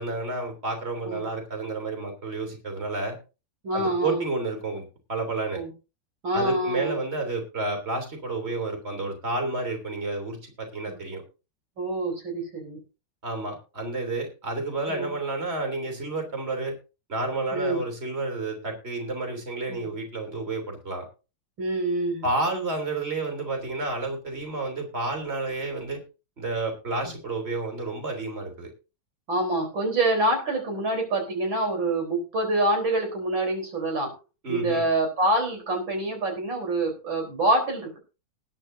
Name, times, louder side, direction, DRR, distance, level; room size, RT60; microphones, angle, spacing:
voice 1, 0.0-3.2 3.7-5.6 6.3-11.2 13.2-16.7 17.1-21.0 22.2-26.0 26.4-28.7 34.4-34.8, right 2 dB, 30° right, 4 dB, 3.4 m, -30 dB
voice 2, 3.6-4.2 5.5-5.7 6.2-7.0 10.9-11.0 11.8-12.8 14.9-15.1 17.5-17.8 19.7-19.9 21.6-22.2 27.0-27.1 29.3-34.1 34.5-38.0, right 2 dB, 85° right, 2 dB, 4.8 m, -26 dB
19.5 x 9.7 x 2.7 m, 0.31 s
omnidirectional pair, 2.1 m